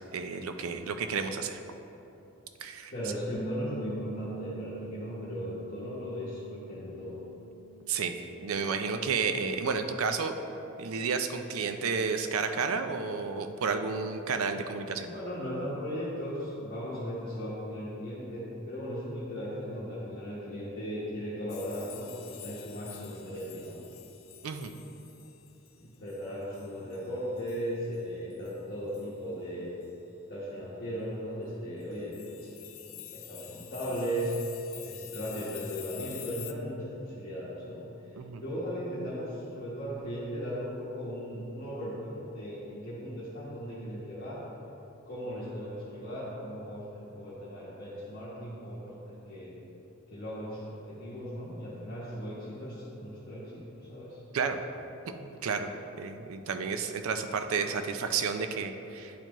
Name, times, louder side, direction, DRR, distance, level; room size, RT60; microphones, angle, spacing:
voice 1, 0.1-1.6 2.6-2.9 7.9-8.1 8.4-10.4 10.8-15.1 24.4-24.7 38.1-38.4 54.3-54.6 55.1-55.7 56.0-59.1, right 5 dB, 75° right, 7 dB, 0.4 m, -31 dB
voice 2, 2.9-7.2 15.0-23.8 25.7-29.7 30.3-32.5 32.8-34.3 34.8-37.8 38.4-44.4 45.1-49.5 50.1-54.2, equal, 45° left, -11 dB, 1.2 m, -37 dB
Bass guitar, 3.3-9.6, right 2 dB, 5° left, 0.6 m, -46 dB
sound 1, 21.5-27.7 27.9-28.0 28.3-28.6 28.9-29.1 29.8-29.9 31.8-36.5, left 13 dB, 65° left, 0.3 m, -48 dB
10.0 x 4.5 x 3.0 m, 3.0 s
head